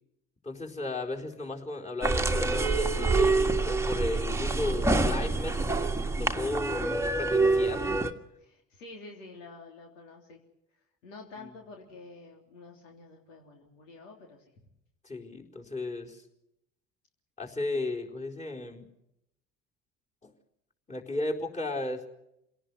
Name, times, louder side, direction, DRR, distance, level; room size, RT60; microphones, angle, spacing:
voice 1, 0.4-8.0 11.4-11.5 15.0-16.2 17.4-18.9 20.2-20.3 20.9-22.0, left 2 dB, 20° left, 0 dB, 4.4 m, -35 dB
sound 1, 2.0-8.1, right 3 dB, 5° right, 1.7 m, -26 dB
voice 2, 8.4-10.4 11.0-14.4, left 3 dB, 75° left, 1 dB, 3.4 m, -48 dB
27.0 x 18.0 x 7.0 m, 0.81 s
figure-of-eight pair, 65°, 38 cm